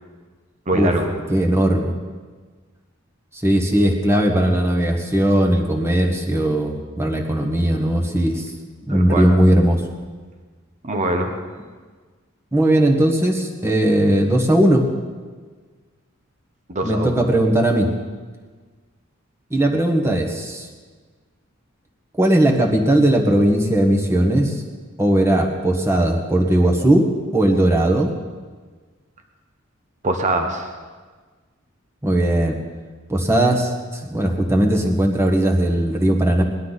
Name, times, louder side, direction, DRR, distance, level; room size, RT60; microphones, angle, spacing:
voice 1, 0.7-1.1 8.9-9.3 10.8-11.3 16.7-17.3 30.0-30.7, right 1 dB, 35° right, 4 dB, 1.1 m, -23 dB
voice 2, 1.3-1.9 3.3-8.5 8.9-9.8 12.5-14.8 16.8-17.9 19.5-20.7 22.2-24.6 25.0-27.1 27.3-28.1 32.0-32.6 33.1-36.4, right 1 dB, 15° right, 2 dB, 1.5 m, -18 dB
19.5 x 12.0 x 4.1 m, 1.4 s
head